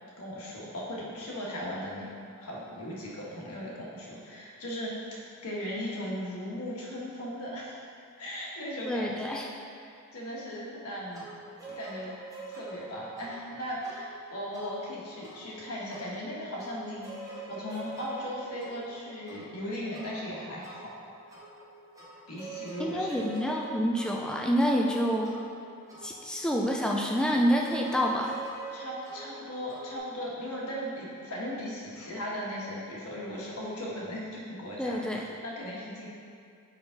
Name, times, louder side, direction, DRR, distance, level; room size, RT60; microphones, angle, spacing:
voice 1, 0.2-2.1 2.4-7.8 8.2-9.4 9.9-11.3 11.6-12.1 12.5-20.9 22.3-23.2 28.7-36.1, equal, 85° left, -5 dB, 1.3 m, -37 dB
voice 2, 8.8-9.4 22.8-25.3 26.0-28.4 34.8-35.3, equal, 5° left, -1 dB, 0.3 m, -27 dB
sound 1, 11.1-30.0, right 3 dB, 15° right, 0.8 m, -45 dB
5.5 x 4.8 x 3.9 m, 2.4 s
head